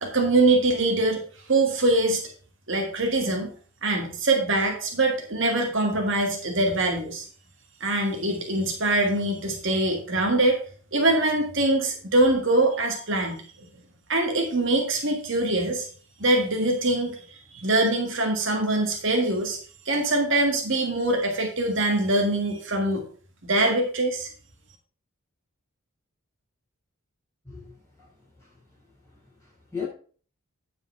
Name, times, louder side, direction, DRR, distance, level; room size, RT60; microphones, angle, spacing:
voice 1, 0.0-1.2 1.5-2.2 2.7-3.5 3.8-7.3 7.8-10.6 10.9-13.7 14.1-15.9 16.2-17.2 17.5-19.6 19.9-23.0 23.4-24.3, right 2 dB, 55° right, 1.7 m, -23 dB
voice 2, 29.4-29.9, left 6 dB, 10° left, 5.2 m, -36 dB
9.5 x 5.2 x 5.5 m
head